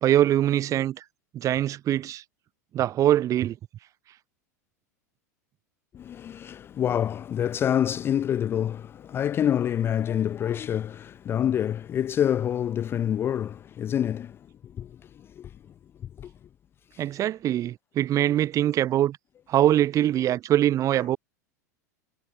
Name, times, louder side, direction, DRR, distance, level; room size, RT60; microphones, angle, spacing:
voice 1, 0.0-1.0 1.3-2.2 2.7-3.6 17.0-19.2 19.5-21.2, right 12 dB, 35° right, 1.5 m, -23 dB
voice 2, 5.9-14.4 14.8-14.9 15.4-15.5 16.2-16.3 16.9-17.0, left 10 dB, 25° left, 0.3 m, -27 dB
figure-of-eight pair, 85°, 9 cm